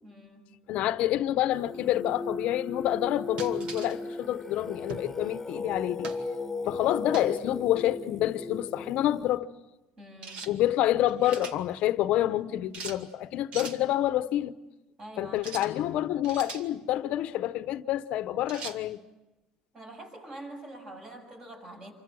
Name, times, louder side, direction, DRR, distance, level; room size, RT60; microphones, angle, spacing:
voice 1, 0.0-0.6 10.0-10.5 15.0-15.6 19.7-21.9, right 1 dB, 30° right, 7.3 m, -45 dB
voice 2, 0.7-6.1 6.6-9.5 10.5-14.6 15.2-19.0, left 13 dB, 60° left, 0.9 m, -28 dB
Singing, 1.5-9.4, left 3 dB, 5° left, 1.9 m, -37 dB
sound 1, 3.4-4.0 4.9-5.1 6.0-6.2 7.1-7.4 10.2-10.5 11.0-11.6 12.7-13.0 13.5-13.8 15.4-15.7 16.2-16.7 18.5-18.8, right 4 dB, 55° right, 2.3 m, -40 dB
27.5 x 25.0 x 7.7 m
cardioid pair, 150°, 2 cm